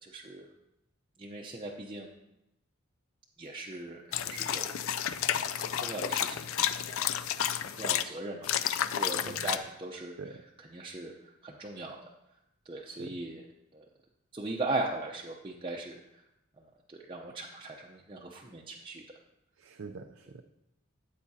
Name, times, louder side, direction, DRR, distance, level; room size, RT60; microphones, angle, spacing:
voice 1, 0.0-0.5 1.2-2.1 3.4-6.5 6.8-7.1 7.4-12.0 12.7-13.4 13.7-13.8 14.3-16.0 16.6-16.7 16.9-19.0, right 2 dB, 25° right, -2 dB, 0.7 m, -39 dB
sound 1, 4.1-8.0 8.4-9.6, left 10 dB, 70° left, 0.4 m, -31 dB
voice 2, 19.6-20.4, right 4 dB, 70° right, 4 dB, 0.5 m, -45 dB
13.5 x 8.6 x 2.8 m, 0.88 s
head